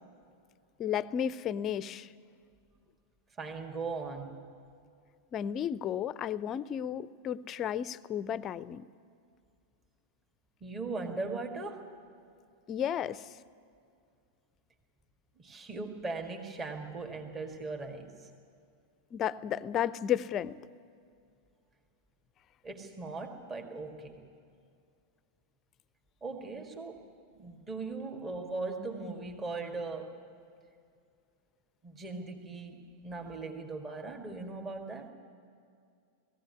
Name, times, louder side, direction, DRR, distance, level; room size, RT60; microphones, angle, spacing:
voice 1, 0.8-2.1 5.3-8.8 12.7-13.3 19.1-20.6, left 9 dB, 30° left, 18 dB, 0.5 m, -33 dB
voice 2, 3.4-4.4 10.6-11.9 15.4-18.3 22.6-24.3 26.2-27.0 27.3-30.2 31.8-35.1, right 3 dB, 20° right, 3 dB, 1.9 m, -39 dB
18.5 x 15.5 x 9.6 m, 2.4 s
figure-of-eight pair, 90°, 0 cm